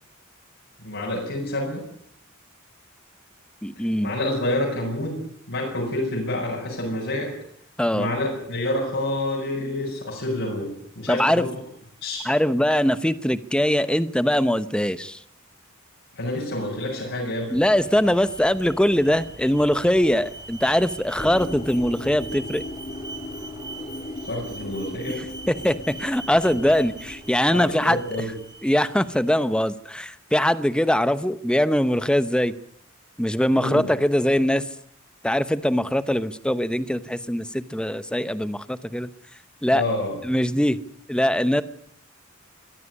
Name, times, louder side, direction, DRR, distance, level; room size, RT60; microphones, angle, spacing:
voice 1, 0.8-1.8 3.8-5.2 5.5-7.3 7.9-11.5 12.0-12.2 16.1-17.5 24.2-25.2 27.5-28.3 33.6-33.9 39.7-40.1, left 1 dB, 60° left, -2 dB, 7.0 m, -28 dB
voice 2, 3.6-4.1 7.8-8.1 11.1-11.5 12.2-15.2 17.5-22.6 25.1-25.2 25.5-28.0 28.6-32.5 33.2-34.6 35.2-39.1 39.6-39.8 40.2-40.8 41.1-41.6, equal, 5° left, 13 dB, 0.9 m, -22 dB
Alarm, 17.3-29.3, right 2 dB, 20° right, 3.1 m, -42 dB
sound 1, 21.2-27.5, left 2 dB, 30° left, 2.2 m, -38 dB
23.0 x 15.5 x 9.8 m, 0.69 s
head